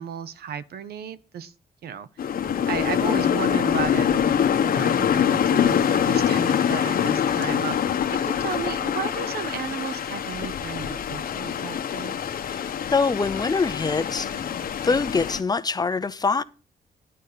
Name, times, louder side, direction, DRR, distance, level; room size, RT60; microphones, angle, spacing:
voice 1, 0.0-1.5 1.8-2.1 2.7-8.0 8.2-12.2, right 7 dB, 90° right, 0.8 m, -34 dB
sound 1, 2.2-15.4, left 8 dB, 65° left, 1.0 m, -24 dB
voice 2, 12.5-14.5 14.8-16.4, left 4 dB, 25° left, 0.6 m, -24 dB
11.0 x 5.5 x 6.7 m
cardioid pair, 120°, 16 cm